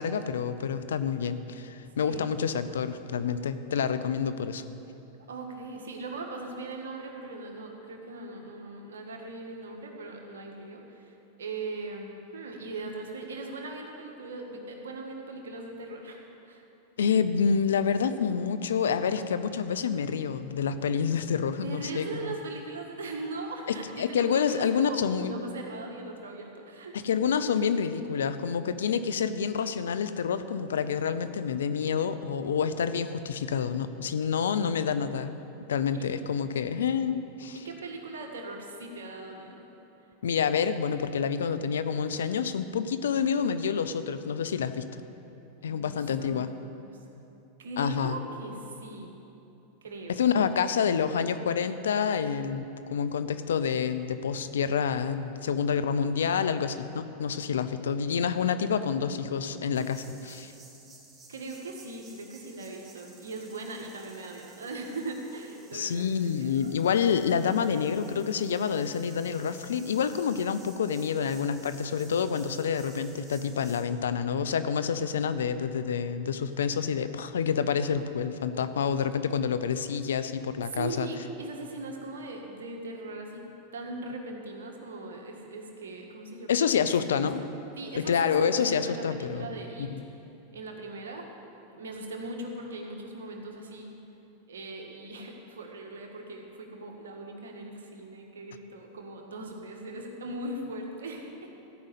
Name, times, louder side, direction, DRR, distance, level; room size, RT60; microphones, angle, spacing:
voice 1, 0.0-4.6 17.0-22.3 23.7-25.3 26.9-35.3 35.7-37.6 40.2-44.9 45.6-46.5 47.8-48.2 50.1-52.7 52.9-60.5 65.7-81.1 86.5-87.4 87.9-89.5 89.8-90.0, left 7 dB, 85° left, 12 dB, 0.6 m, -28 dB
voice 2, 5.3-16.2 16.4-16.7 21.6-27.0 35.9-36.1 37.5-39.7 45.6-46.9 47.6-49.1 49.8-50.6 61.3-66.7 80.7-83.5 83.7-86.8 87.1-87.2 87.8-89.9 90.5-91.3 91.6-93.9 94.5-101.5, right 2 dB, 85° right, 1 dB, 1.7 m, -40 dB
sound 1, 59.7-73.8, right 3 dB, 25° right, 2.6 m, -54 dB
14.0 x 5.5 x 8.3 m, 2.9 s
hypercardioid pair, 105°, 0 cm